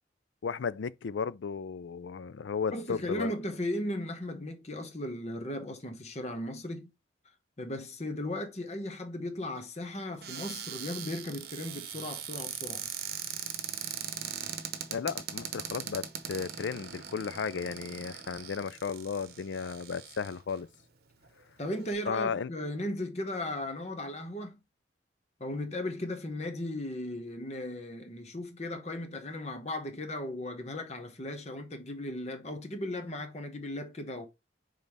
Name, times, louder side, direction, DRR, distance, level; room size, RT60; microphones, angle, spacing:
voice 1, 0.4-3.3 14.9-20.7 22.1-22.5, left 6 dB, 80° left, 0.4 m, -34 dB
voice 2, 2.7-6.9 7.6-12.9 21.6-24.6 25.4-34.3, left 1 dB, 35° left, 1.1 m, -36 dB
Cupboard open or close, 10.2-20.6 21.2-21.3 21.6-21.9, right 8 dB, 55° right, 0.9 m, -40 dB
5.3 x 3.9 x 4.6 m
head